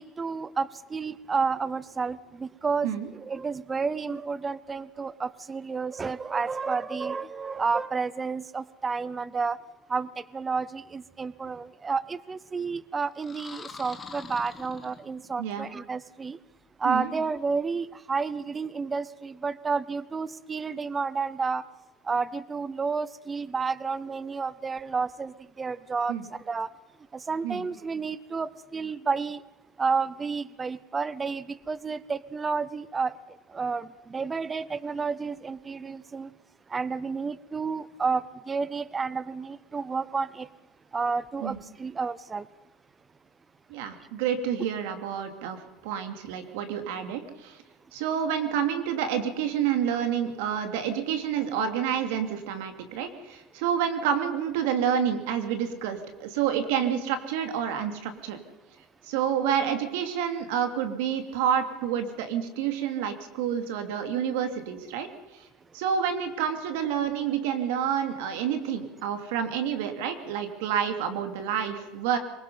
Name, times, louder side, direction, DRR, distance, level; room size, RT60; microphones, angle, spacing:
voice 1, 0.0-2.9 3.2-9.6 9.9-16.4 16.8-21.6 22.0-26.7 27.1-29.4 29.8-33.2 33.5-36.3 36.7-40.5 40.9-42.5, right 5 dB, 15° right, 19 dB, 0.6 m, -30 dB
sound 1, 13.1-15.5, left 4 dB, 20° left, 1.8 m, -44 dB
voice 2, 43.7-47.6 47.9-58.4 59.0-65.5 65.7-72.2, right 8 dB, 80° right, 7 dB, 2.7 m, -29 dB
23.5 x 20.5 x 5.6 m, 1.1 s
cardioid pair, 145°, 0 cm